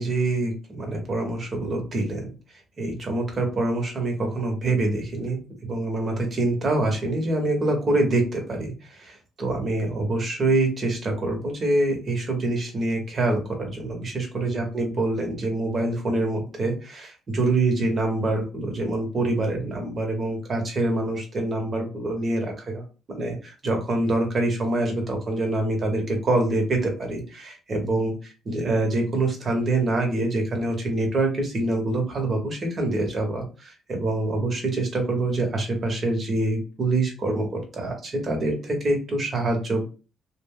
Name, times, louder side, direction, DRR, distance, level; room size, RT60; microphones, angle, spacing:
voice 1, 0.0-2.3 2.8-39.8, right 2 dB, 45° right, 3 dB, 1.0 m, -25 dB
2.5 x 2.1 x 3.6 m, 0.35 s
cardioid pair, 90°, 0 cm